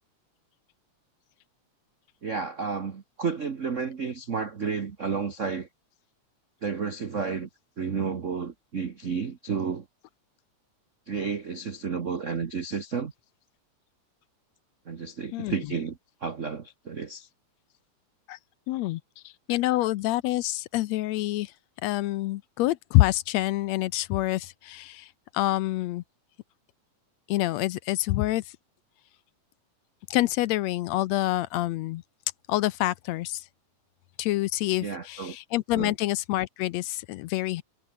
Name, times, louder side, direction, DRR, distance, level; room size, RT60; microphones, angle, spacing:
voice 1, 2.2-5.7 6.6-7.5 7.8-9.9 11.1-13.1 14.9-17.3 34.8-35.4 35.7-35.9, right 5 dB, 85° right, 0.6 m, -31 dB
voice 2, 18.7-21.5 21.8-25.1 25.3-26.0 27.3-28.4 30.1-32.0 32.5-33.4 34.2-37.6, left 17 dB, 75° left, 1.8 m, -27 dB
omnidirectional pair, 3.3 m